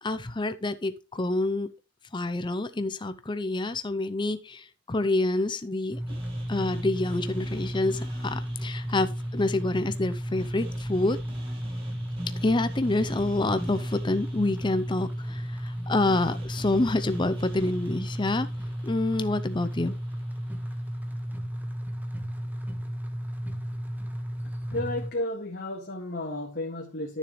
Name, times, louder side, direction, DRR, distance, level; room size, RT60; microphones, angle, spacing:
voice 1, 0.0-1.7 2.1-6.2 6.5-11.2 12.4-18.5 18.8-20.0, left 2 dB, 20° left, 0.6 m, -27 dB
sound 1, 5.9-25.1, equal, 10° right, 1.3 m, -33 dB
sound 2, 6.1-20.2, right 1 dB, 25° right, 2.6 m, -48 dB
voice 2, 24.4-27.2, left 1 dB, 50° left, 2.0 m, -33 dB
13.0 x 7.0 x 3.2 m
head